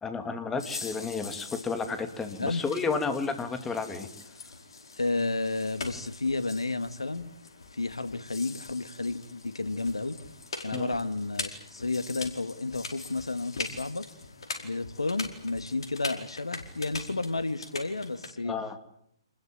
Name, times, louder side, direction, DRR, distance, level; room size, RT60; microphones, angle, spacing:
voice 1, 0.0-4.1 10.7-11.0 18.4-18.8, left 4 dB, 10° left, 8 dB, 2.8 m, -32 dB
sound 1, 0.6-18.3, left 3 dB, 70° left, 4.8 m, -42 dB
voice 2, 5.0-7.3 7.7-10.2 10.6-14.1 14.6-18.6, left 3 dB, 85° left, 12 dB, 1.9 m, -31 dB
27.5 x 20.5 x 9.0 m, 0.74 s
figure-of-eight pair, 130°, 3 cm